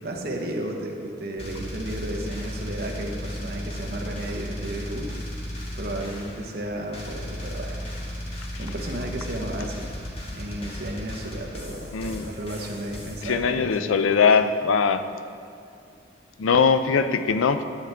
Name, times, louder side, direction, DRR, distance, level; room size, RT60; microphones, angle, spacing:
voice 1, 0.0-5.1 5.7-8.0 8.6-9.9 10.3-14.3, right 1 dB, 50° right, 1 dB, 1.0 m, -33 dB
sound 1, 1.4-6.6 6.9-13.3, equal, 30° left, 1.4 m, -35 dB
voice 2, 11.9-12.3 13.2-15.1 16.4-17.6, left 5 dB, 90° left, 10 dB, 0.5 m, -21 dB
12.0 x 7.9 x 3.4 m, 2.4 s
head